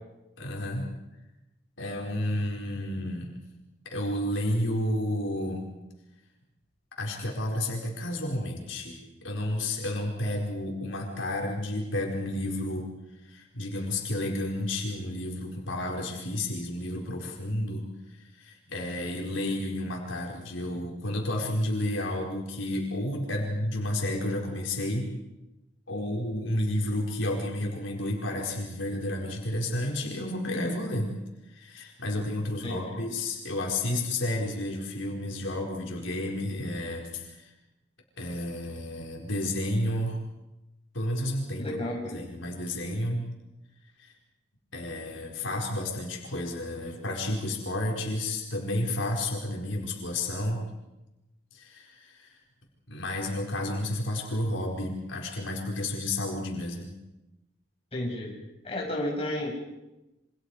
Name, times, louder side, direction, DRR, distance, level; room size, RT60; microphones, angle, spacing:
voice 1, 0.4-0.9 1.8-3.3 3.8-5.7 7.0-12.9 13.3-17.9 18.4-25.1 25.9-31.1 31.5-37.5 38.2-40.2 40.9-41.7 42.1-43.2 44.0-44.1 44.7-50.6 51.5-52.4 52.9-56.9, left 1 dB, 85° left, -1 dB, 4.8 m, -31 dB
voice 2, 32.6-33.1 41.6-42.2 57.9-58.4 58.6-59.6, left 1 dB, 30° left, -2 dB, 6.7 m, -32 dB
28.0 x 26.0 x 5.0 m, 1.0 s
head